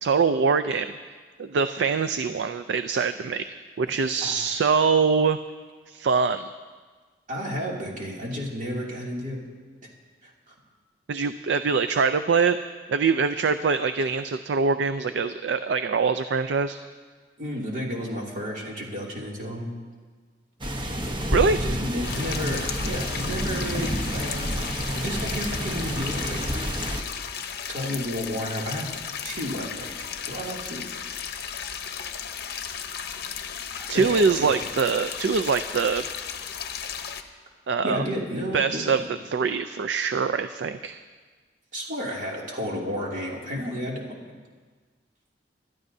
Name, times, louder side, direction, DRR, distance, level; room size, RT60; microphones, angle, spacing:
voice 1, 0.0-0.9 1.4-3.5 3.8-5.4 5.9-6.5 11.1-12.6 12.9-16.8 21.3-21.6 27.8-28.0 33.9-36.1 37.7-38.1 38.5-39.0 39.3-41.0, right 5 dB, 80° right, 10 dB, 0.4 m, -23 dB
voice 2, 7.3-9.4 10.2-10.6 17.4-19.7 21.5-24.7 24.9-26.4 27.7-28.9 29.2-29.9 30.3-30.8 33.9-34.5 37.8-39.1 41.7-44.1, equal, 50° right, -3 dB, 2.6 m, -32 dB
sound 1, 20.6-27.0, equal, 30° right, 1.0 m, -29 dB
sound 2, 22.0-37.2, left 7 dB, 65° left, 0.8 m, -35 dB
25.5 x 12.5 x 2.7 m, 1.5 s
head